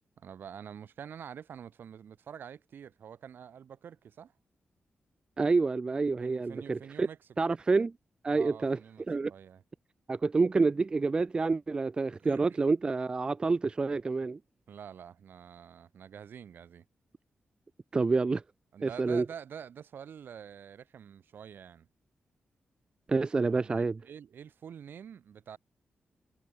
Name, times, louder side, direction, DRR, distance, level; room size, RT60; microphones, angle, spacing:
voice 1, 0.2-4.3 6.2-7.3 8.3-9.6 12.2-12.6 14.7-16.8 18.7-21.9 23.4-25.6, right 8 dB, 70° right, 5.9 m, -47 dB
voice 2, 5.4-7.1 7.4-7.9 8.2-8.8 9.1-9.3 10.1-14.4 17.9-18.4 18.8-19.3 23.1-24.0, right 4 dB, 25° right, 0.3 m, -28 dB
wide cardioid pair, 155°, 4 cm